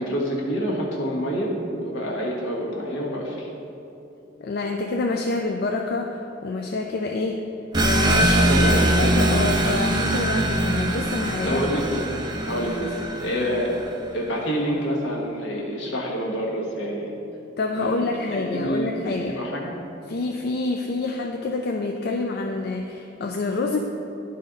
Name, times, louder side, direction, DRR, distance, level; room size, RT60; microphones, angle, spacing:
voice 1, 0.0-3.5 8.2-8.8 11.4-12.2 12.5-12.8 13.2-13.8 14.1-17.1 17.7-19.7, equal, 75° left, -3 dB, 1.4 m, -27 dB
voice 2, 4.4-7.4 7.7-11.6 12.8-12.9 17.6-19.4 20.1-23.8, left 3 dB, 55° left, 2 dB, 0.4 m, -27 dB
sound 1, 7.7-14.0, right 1 dB, 25° right, 0.5 m, -22 dB
11.0 x 4.1 x 3.8 m, 2.9 s
head